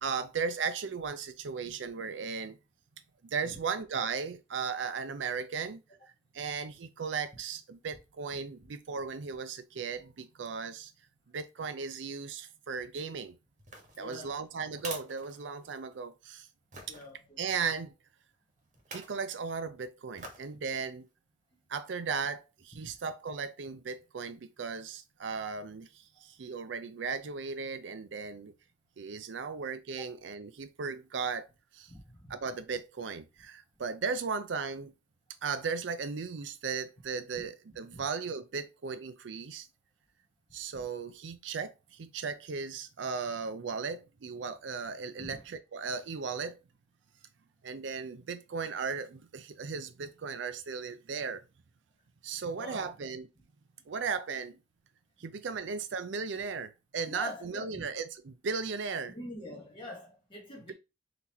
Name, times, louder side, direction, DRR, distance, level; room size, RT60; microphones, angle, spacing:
voice 1, 0.0-2.6 3.2-5.8 6.3-10.9 11.3-13.4 14.0-16.5 16.9-17.0 17.4-17.9 18.9-21.1 21.7-28.5 29.0-31.9 32.3-34.9 35.4-39.7 40.5-46.6 47.6-51.4 52.2-53.3 53.9-54.6 55.2-59.2, right 5 dB, 85° right, 0.5 m, -36 dB
sound 1, 13.6-16.0 16.7-17.1 18.7-19.2 20.2-20.5 21.0-21.1, right 3 dB, 40° right, 1.2 m, -46 dB
voice 2, 14.0-14.4 16.9-17.4 22.8-22.9 30.0-30.1 31.9-32.3 37.9-38.0 45.2-45.4 52.5-52.9 57.1-57.8 59.1-60.7, left 1 dB, 30° left, 1.0 m, -44 dB
3.9 x 2.9 x 4.2 m
head